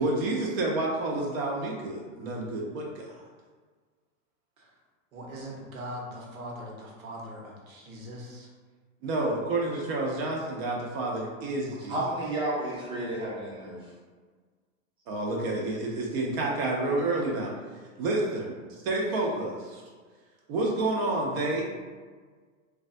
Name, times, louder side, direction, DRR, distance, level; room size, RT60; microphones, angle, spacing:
voice 1, 0.0-3.1 9.0-12.0 15.1-17.5 18.0-19.8 20.5-21.6, right 2 dB, 50° right, -2 dB, 0.6 m, -29 dB
voice 2, 5.1-8.5, equal, 85° right, -2 dB, 1.0 m, -41 dB
voice 3, 11.8-13.9, right 1 dB, 15° right, -6 dB, 0.6 m, -32 dB
3.2 x 2.2 x 2.5 m, 1.5 s
supercardioid pair, 140°, 40 cm